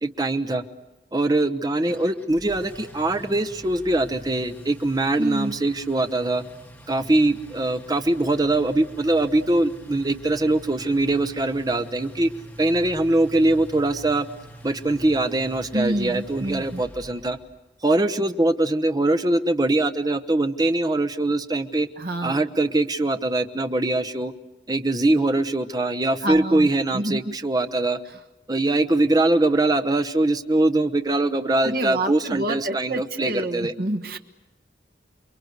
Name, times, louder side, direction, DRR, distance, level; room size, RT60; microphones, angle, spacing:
voice 1, 0.0-0.6 1.1-6.4 6.9-12.3 12.6-14.3 14.6-17.4 17.8-21.9 22.2-24.3 24.7-28.0 28.5-33.7, right 2 dB, 20° right, 8 dB, 0.9 m, -22 dB
Engine, 1.9-17.6, right 1 dB, 10° left, 2.0 m, -44 dB
voice 2, 5.2-5.5 15.7-16.8 22.0-22.4 26.2-27.3 31.6-34.2, right 1 dB, 55° right, 5 dB, 1.4 m, -28 dB
29.0 x 22.5 x 8.1 m, 1.1 s
head